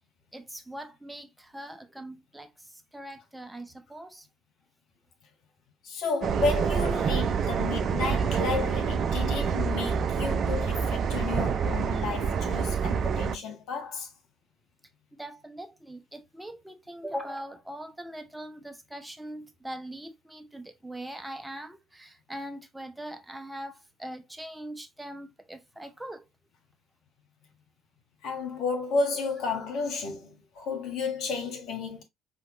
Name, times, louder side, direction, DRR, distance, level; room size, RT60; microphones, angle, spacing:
voice 1, 0.3-4.3 15.1-26.2, right 1 dB, 10° right, 0.9 m, -41 dB
voice 2, 5.8-14.1 28.2-32.0, left 4 dB, 65° left, 1.5 m, -32 dB
sound 1, 6.2-13.4, right 6 dB, 50° right, 0.5 m, -27 dB
5.6 x 2.9 x 2.9 m
hypercardioid pair, 50°, 0 cm